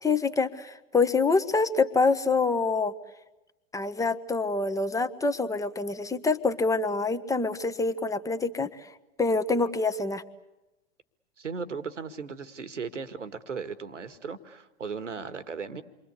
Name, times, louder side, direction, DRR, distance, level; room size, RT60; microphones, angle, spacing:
voice 1, 0.0-2.9 3.7-8.9 9.2-10.2, left 4 dB, 10° left, 9 dB, 1.4 m, -26 dB
voice 2, 11.4-15.8, right 5 dB, 85° right, 12 dB, 1.9 m, -37 dB
28.5 x 23.5 x 8.3 m, 1.0 s
figure-of-eight pair, 100°, 36 cm